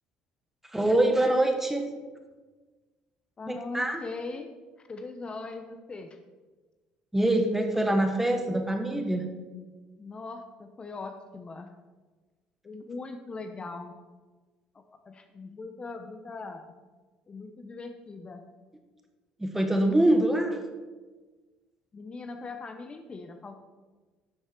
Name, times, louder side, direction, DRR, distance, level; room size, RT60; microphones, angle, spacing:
voice 1, 0.7-1.9 3.4-4.0 7.1-9.3 19.4-20.6, right 1 dB, 10° right, 5 dB, 1.5 m, -24 dB
voice 2, 3.4-4.5 4.9-6.2 10.0-11.7 12.6-14.0 14.7-16.8 17.3-18.4 21.9-23.6, left 3 dB, 35° left, 6 dB, 0.9 m, -40 dB
11.5 x 6.5 x 4.5 m, 1.3 s
supercardioid pair, 80°, 3 cm